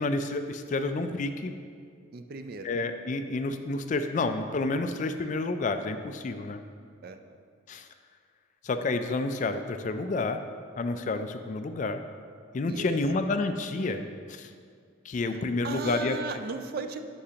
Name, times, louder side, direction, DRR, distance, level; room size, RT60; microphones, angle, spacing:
voice 1, 0.0-1.5 2.6-6.6 7.7-7.9 8.6-10.4 10.8-12.0 12.5-14.5 15.0-16.2, left 3 dB, 40° left, 8 dB, 0.3 m, -29 dB
voice 2, 2.1-2.7 7.0-7.3 12.6-13.0 15.3-17.0, right 4 dB, 50° right, 7 dB, 0.4 m, -37 dB
10.0 x 5.7 x 2.8 m, 2.2 s
head